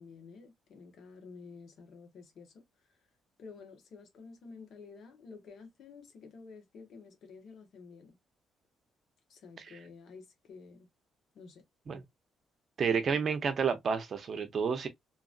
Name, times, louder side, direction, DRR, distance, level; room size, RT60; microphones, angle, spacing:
voice 1, 0.0-2.6 3.4-8.2 9.3-10.9 11.3-11.6, left 4 dB, 65° left, 1.2 m, -51 dB
voice 2, 12.8-14.9, right 6 dB, 50° right, 0.7 m, -30 dB
2.9 x 2.6 x 2.4 m
cardioid pair, 90°, 0 cm